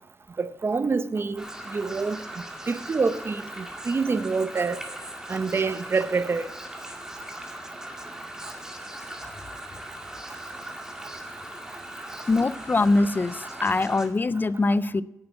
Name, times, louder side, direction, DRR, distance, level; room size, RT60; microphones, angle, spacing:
voice 1, 0.4-2.2 2.7-4.8 5.3-6.5, right 4 dB, 40° right, 0.6 m, -26 dB
sound 1, 1.4-14.1, right 1 dB, 10° right, 2.0 m, -39 dB
voice 2, 12.3-15.0, left 3 dB, 35° left, 0.4 m, -23 dB
9.6 x 8.8 x 7.8 m
wide cardioid pair, 110°, 6 cm